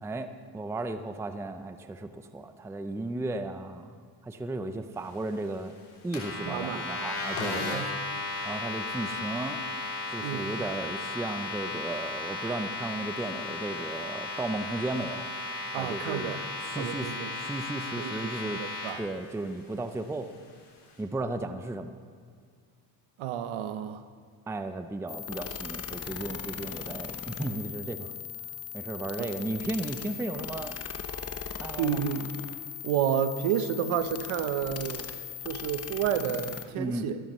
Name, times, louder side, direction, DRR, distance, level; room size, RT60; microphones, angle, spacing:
voice 1, 0.0-3.9 4.2-5.7 6.0-7.8 8.4-9.6 10.1-15.3 15.8-16.4 16.6-18.6 19.0-20.3 21.0-21.9 24.5-28.1 28.7-30.8 31.6-32.1 36.8-37.1, right 2 dB, 5° right, 9 dB, 0.5 m, -35 dB
sound 1, 6.1-18.9, left 2 dB, 90° left, 3.4 m, -35 dB
voice 2, 6.4-6.9 7.6-7.9 10.2-10.5 15.7-16.4 16.8-17.3 18.0-19.0 23.2-24.1 29.2-29.3 31.8-32.3 32.8-37.2, right 8 dB, 75° right, 11 dB, 0.9 m, -31 dB
sound 2, 25.1-36.6, left 8 dB, 30° left, 0.9 m, -39 dB
15.0 x 13.0 x 3.1 m, 2.1 s
cardioid pair, 85°, 49 cm